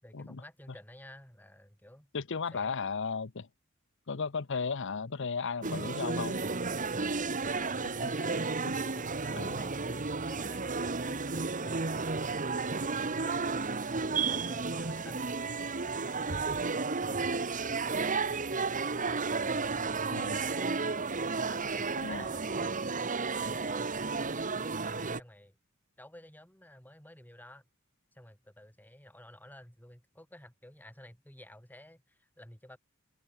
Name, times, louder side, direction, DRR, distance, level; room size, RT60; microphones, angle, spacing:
voice 1, 0.0-2.1 2.5-2.8 7.5-8.4 8.8-16.5 17.0-20.8 21.3-25.6 26.0-27.6 28.1-32.8, left 1 dB, 10° left, 5.3 m, -53 dB
voice 2, 2.1-3.5 4.1-6.4 9.4-9.6 20.1-20.4 22.0-22.3, left 5 dB, 60° left, 0.8 m, -35 dB
sound 1, 5.6-25.2, right 4 dB, 40° right, 1.5 m, -32 dB
head